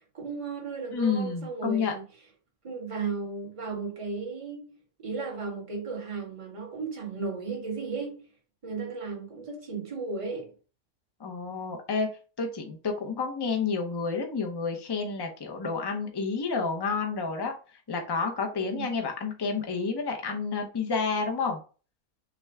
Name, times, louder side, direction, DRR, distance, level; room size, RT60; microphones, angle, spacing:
voice 1, 0.0-2.0 2.6-4.7 5.0-8.3 8.6-10.5 18.5-18.9, right 4 dB, 25° right, 1.1 m, -35 dB
voice 2, 0.9-1.9 11.2-12.1 12.4-17.5 17.9-21.6, left 4 dB, 25° left, 0.5 m, -30 dB
6.0 x 2.2 x 3.4 m
omnidirectional pair, 1.6 m